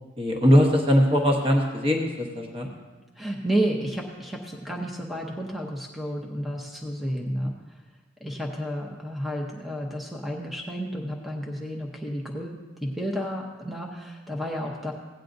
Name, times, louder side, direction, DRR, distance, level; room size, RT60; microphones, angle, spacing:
voice 1, 0.2-2.7 7.1-7.3, equal, 25° right, 1 dB, 1.0 m, -21 dB
voice 2, 3.2-7.5 8.2-14.9, equal, ahead, 0 dB, 0.7 m, -31 dB
16.5 x 9.1 x 2.6 m, 1.3 s
head